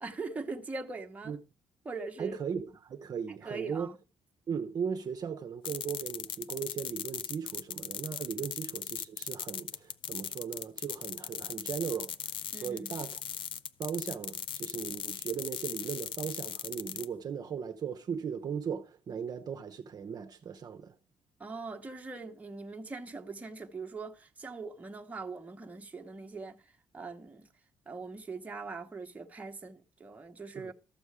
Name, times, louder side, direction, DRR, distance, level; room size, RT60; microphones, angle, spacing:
voice 1, 0.0-1.4 1.8-2.4 3.3-4.0 12.5-12.9 21.4-27.5 27.9-30.7, right 4 dB, 15° right, 1.0 m, -41 dB
voice 2, 2.2-3.9 4.5-13.2 13.8-20.9 30.5-30.7, right 7 dB, 40° right, 0.8 m, -37 dB
sound 1, 5.6-17.1, left 9 dB, 55° left, 0.5 m, -38 dB
13.5 x 7.0 x 4.8 m
cardioid pair, 160°, 10 cm